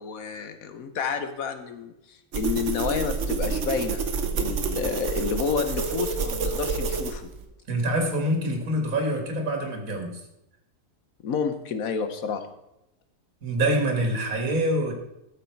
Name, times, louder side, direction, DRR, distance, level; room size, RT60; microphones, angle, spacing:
voice 1, 0.0-4.0 4.3-7.3 11.2-12.5, left 6 dB, 85° left, 8 dB, 1.4 m, -30 dB
sound 1, 2.3-7.5, right 5 dB, 60° right, 1.3 m, -28 dB
voice 2, 7.7-10.2 13.4-14.9, right 1 dB, 75° right, 3 dB, 2.1 m, -25 dB
13.0 x 6.8 x 4.5 m, 0.85 s
omnidirectional pair, 1.4 m